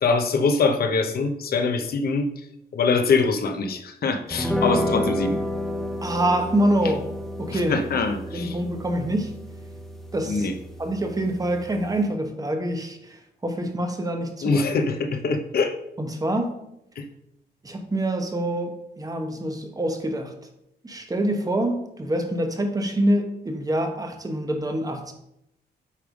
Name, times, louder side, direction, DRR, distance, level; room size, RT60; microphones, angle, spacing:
voice 1, 0.0-2.3 2.7-5.4 7.5-8.6 10.3-10.5 14.4-15.8 17.0-17.1, left 4 dB, 60° left, 7 dB, 0.8 m, -23 dB
sound 1, 4.3-12.1, left 1 dB, ahead, 0.6 m, -31 dB
voice 2, 6.0-7.0 7.4-7.8 8.3-9.4 10.1-10.5 10.8-14.6 16.0-16.5 17.6-20.3 20.8-25.1, right 1 dB, 20° right, 5 dB, 1.0 m, -26 dB
8.3 x 3.3 x 5.1 m, 0.81 s
cardioid pair, 115°, 17 cm